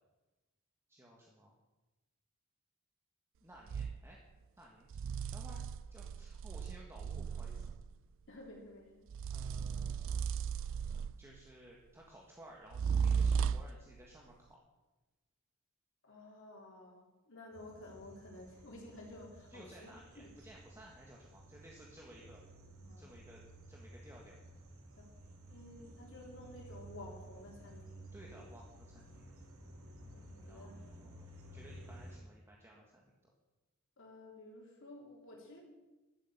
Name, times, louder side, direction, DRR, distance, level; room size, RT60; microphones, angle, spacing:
voice 1, 0.9-1.6 3.4-4.2 4.6-5.0 5.3-5.6 5.9-7.8 9.3-10.3 11.2-14.6 19.5-22.4 23.0-24.4 28.1-29.3 30.4-33.1, right 1 dB, 10° right, -2 dB, 1.7 m, -57 dB
sound 1, 3.7-4.0 4.9-7.9 9.1-11.4 12.7-13.8, right 6 dB, 65° right, 0.3 m, -35 dB
voice 2, 8.3-9.1 16.0-20.3 22.8-23.1 25.0-25.2 25.5-28.5 30.1-30.8 34.0-35.6, left 2 dB, 65° left, -2 dB, 3.2 m, -53 dB
sound 2, 17.5-32.2, right 1 dB, 85° right, 2.3 m, -54 dB
12.0 x 8.1 x 8.4 m, 1.1 s
head